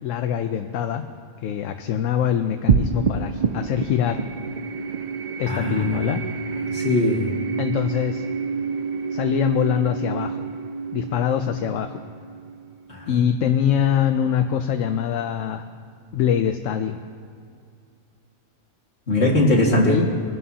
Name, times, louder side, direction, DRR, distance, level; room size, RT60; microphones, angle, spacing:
voice 1, 0.0-1.0 1.4-4.2 5.4-6.2 7.6-8.2 9.1-10.5 10.9-12.0 13.1-15.6 16.1-17.0 19.7-20.1, left 9 dB, 75° left, 7 dB, 0.9 m, -23 dB
sound 1, 2.7-13.3, right 6 dB, 90° right, 0.3 m, -28 dB
voice 2, 5.5-6.2 6.6-7.3 12.9-13.2 19.1-20.0, left 1 dB, 55° left, -3 dB, 2.3 m, -21 dB
22.5 x 11.0 x 2.8 m, 2.3 s
omnidirectional pair, 1.4 m